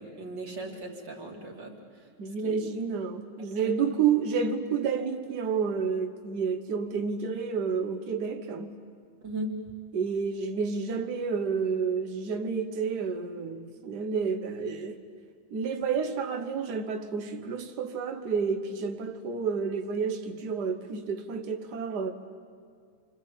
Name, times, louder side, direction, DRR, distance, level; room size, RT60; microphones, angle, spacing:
voice 1, 0.0-2.1 2.4-2.7 3.6-3.7 9.2-9.5, right 1 dB, 35° right, 3.2 m, -38 dB
voice 2, 2.2-8.8 9.9-15.0 15.5-22.1, right 6 dB, 80° right, 0.9 m, -30 dB
29.5 x 25.5 x 7.4 m
omnidirectional pair, 3.7 m